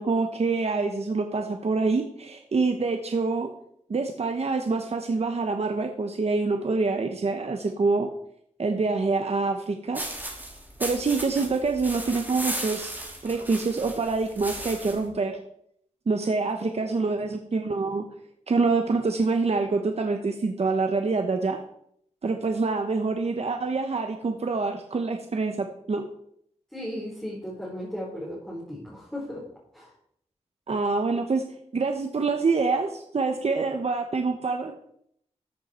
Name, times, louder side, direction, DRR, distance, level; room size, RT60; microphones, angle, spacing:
voice 1, 0.0-3.5 3.9-8.1 8.6-10.0 10.8-15.4 16.1-18.1 18.5-21.6 22.2-26.0 30.7-31.4 31.7-34.7, right 4 dB, 60° right, 5 dB, 1.0 m, -26 dB
sound 1, 9.9-15.1, right 1 dB, 15° right, 2.7 m, -36 dB
voice 2, 26.7-29.4 29.7-29.9, equal, 5° left, -7 dB, 4.1 m, -36 dB
14.0 x 7.8 x 4.4 m, 0.70 s
wide cardioid pair, 110°, 12 cm